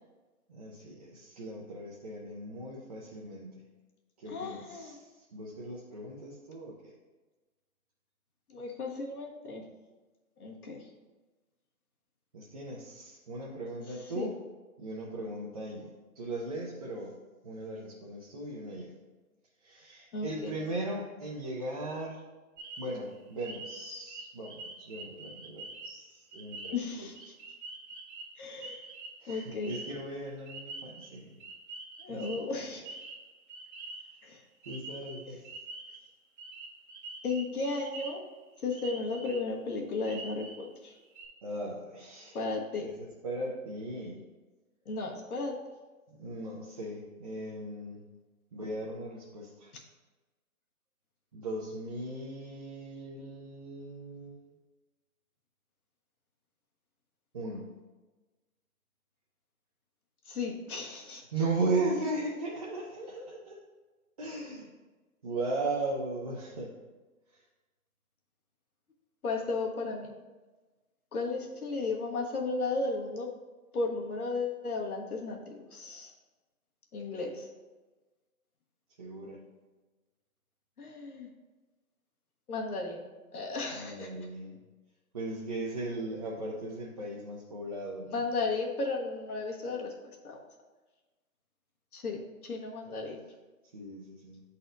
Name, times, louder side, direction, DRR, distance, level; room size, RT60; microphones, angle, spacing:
voice 1, 0.5-3.6 4.2-6.9 12.3-14.4 14.8-17.1 17.4-18.9 19.6-22.2 22.8-27.1 29.2-31.3 32.1-32.2 34.7-35.5 41.4-42.4 42.8-44.2 46.1-48.0 48.5-49.7 51.3-54.5 57.3-57.7 61.3-63.6 64.2-64.7 65.2-66.8 79.0-79.4 83.7-84.6 85.1-88.2 93.7-94.4, right 2 dB, 30° right, -5 dB, 0.5 m, -37 dB
voice 2, 4.3-5.0 8.5-9.6 10.4-10.8 14.2-14.3 20.1-20.5 26.7-27.3 28.4-28.8 29.3-29.8 32.0-32.8 34.2-34.4 35.3-35.4 37.2-38.2 38.6-41.0 42.3-42.9 44.8-45.5 60.3-61.2 69.2-70.1 71.1-73.3 73.7-76.1 76.9-77.5 80.8-81.3 82.5-83.0 83.3-84.1 88.1-89.9 90.2-90.4 91.9-93.2, left 3 dB, 85° left, 0 dB, 1.4 m, -34 dB
sound 1, 22.6-34.3 34.6-36.0 36.4-38.4 38.7-39.5 40.0-40.7 40.9-41.3, right 3 dB, 55° right, 1.5 m, -46 dB
8.9 x 4.1 x 2.6 m, 1.2 s
hypercardioid pair, 155°, 43 cm